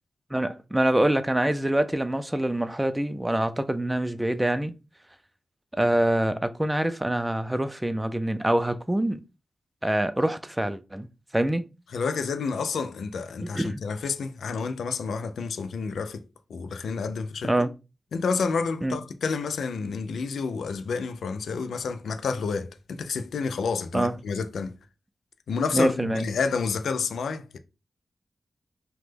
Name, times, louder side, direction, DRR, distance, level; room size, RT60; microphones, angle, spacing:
voice 1, 0.3-4.7 5.7-9.2 9.8-11.1 11.3-11.6 13.4-13.8 17.5-17.7 18.8-19.0 23.9-24.2 25.7-26.3, right 1 dB, 15° right, 0.4 m, -25 dB
voice 2, 11.9-16.2 16.5-17.5 18.1-24.7 25.5-27.6, left 5 dB, 90° left, 0.3 m, -29 dB
3.0 x 2.1 x 3.3 m
cardioid pair, 45°, 0 cm